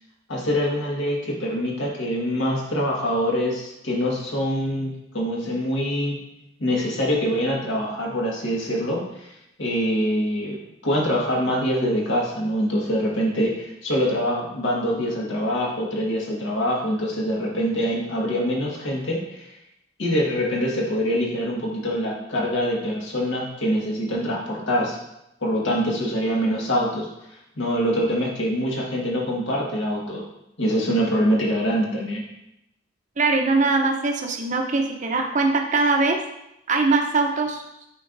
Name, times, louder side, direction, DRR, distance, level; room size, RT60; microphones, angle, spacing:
voice 1, 0.3-6.2 6.6-9.3 9.6-19.5 20.0-25.0 25.4-27.1 27.6-30.2 30.6-32.2, equal, 80° left, -3 dB, 1.7 m, -24 dB
voice 2, 33.2-36.2 36.7-37.6, right 3 dB, 40° right, 2 dB, 0.8 m, -21 dB
8.7 x 4.4 x 2.6 m, 0.84 s
head